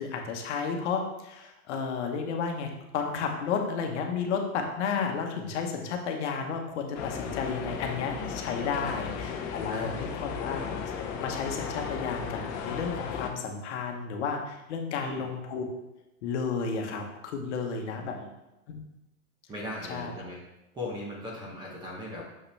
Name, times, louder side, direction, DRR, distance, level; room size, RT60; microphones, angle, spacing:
voice 1, 0.0-10.6 11.2-15.8 16.2-18.2 18.7-18.9 19.9-20.2, left 5 dB, 55° left, 3 dB, 1.2 m, -32 dB
sound 1, 6.9-13.3, left 6 dB, 30° left, 0.7 m, -35 dB
voice 2, 17.9-18.3 19.5-20.4 20.7-22.2, left 1 dB, 10° right, -3 dB, 0.8 m, -39 dB
6.7 x 5.6 x 3.3 m, 0.95 s
supercardioid pair, 165°, 42 cm